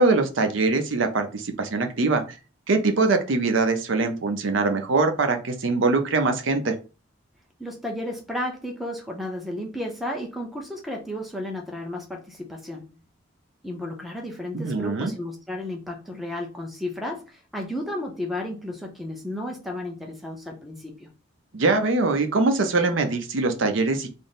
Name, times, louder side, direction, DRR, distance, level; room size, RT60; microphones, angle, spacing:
voice 1, 0.0-2.2 2.7-6.7 14.5-15.1 21.5-24.1, right 3 dB, 65° right, 0.6 m, -22 dB
voice 2, 7.6-13.0 13.6-21.1, left 1 dB, ahead, 0.6 m, -33 dB
3.4 x 2.0 x 4.0 m
head